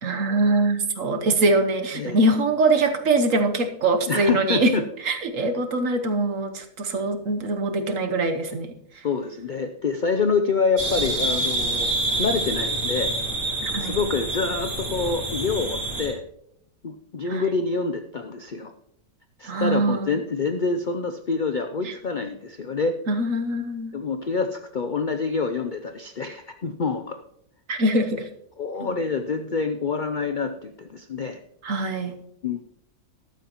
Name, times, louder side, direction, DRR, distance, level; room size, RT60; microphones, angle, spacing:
voice 1, 0.0-4.7 5.0-9.0 13.6-14.0 17.3-17.4 19.4-20.2 21.8-21.9 23.1-23.9 27.7-28.3 28.8-28.9 31.6-32.1, right 2 dB, 55° right, 6 dB, 1.4 m, -23 dB
voice 2, 4.1-4.8 9.0-13.1 13.8-16.2 16.8-18.7 19.4-23.0 23.9-27.2 28.6-31.4 32.4-32.6, left 4 dB, 85° left, 7 dB, 0.4 m, -26 dB
sound 1, 10.8-16.1, right 2 dB, 85° right, 3.5 m, -27 dB
14.0 x 12.0 x 3.0 m, 0.74 s
omnidirectional pair, 1.8 m